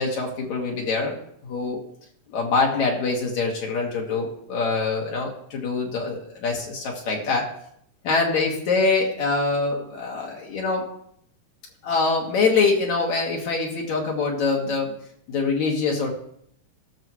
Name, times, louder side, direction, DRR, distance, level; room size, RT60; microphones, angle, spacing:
voice 1, 0.0-1.8 2.3-7.5 8.0-10.9 11.8-14.9 15.3-16.1, left 4 dB, 65° left, -1 dB, 2.9 m, -24 dB
18.0 x 6.9 x 3.1 m, 0.69 s
omnidirectional pair, 3.5 m